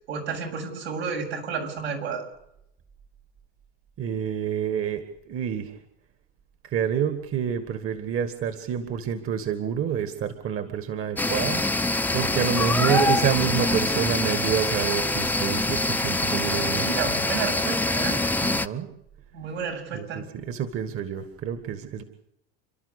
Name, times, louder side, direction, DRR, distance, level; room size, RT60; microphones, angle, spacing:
voice 1, 0.1-2.2 12.8-13.1 16.7-18.3 19.3-20.2, right 5 dB, 85° right, 1 dB, 7.8 m, -31 dB
voice 2, 4.0-5.8 6.7-11.7 12.1-16.9 18.4-18.9 19.9-22.0, right 9 dB, 45° right, 9 dB, 2.1 m, -28 dB
sound 1, 11.2-18.7, left 2 dB, 5° left, 0.8 m, -25 dB
29.5 x 12.0 x 8.4 m, 0.79 s
hypercardioid pair, 90°, 32 cm